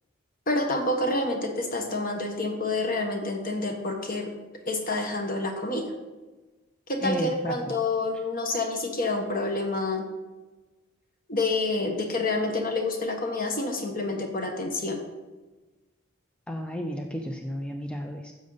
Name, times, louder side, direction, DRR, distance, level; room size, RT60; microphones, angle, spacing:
voice 1, 0.5-4.3 4.7-5.8 6.9-10.1 11.3-15.0, left 2 dB, 40° left, 3 dB, 1.4 m, -28 dB
voice 2, 7.0-7.6 16.5-18.3, equal, 5° left, 3 dB, 0.5 m, -32 dB
10.5 x 7.5 x 4.0 m, 1.2 s
head